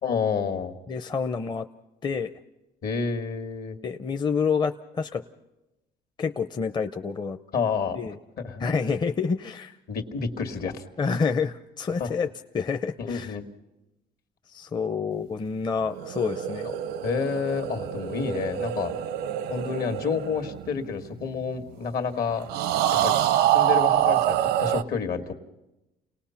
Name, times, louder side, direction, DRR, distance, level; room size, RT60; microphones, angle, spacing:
voice 1, 0.0-0.7 2.8-3.8 7.5-8.0 8.4-8.6 9.9-10.8 12.0-12.1 13.0-13.4 17.0-19.0 19.5-22.5 22.9-23.1 23.5-25.3, left 6 dB, 65° left, 7 dB, 1.9 m, -29 dB
voice 2, 0.9-1.7 2.0-2.3 3.8-5.2 6.2-7.4 7.9-8.2 8.6-9.8 11.0-12.3 12.5-13.4 14.5-16.7, left 5 dB, 25° left, 7 dB, 0.7 m, -28 dB
sound 1, 15.8-21.4 22.5-24.8, right 12 dB, 90° right, 0.7 m, -26 dB
29.5 x 18.5 x 5.8 m, 0.97 s
cardioid pair, 110°, 17 cm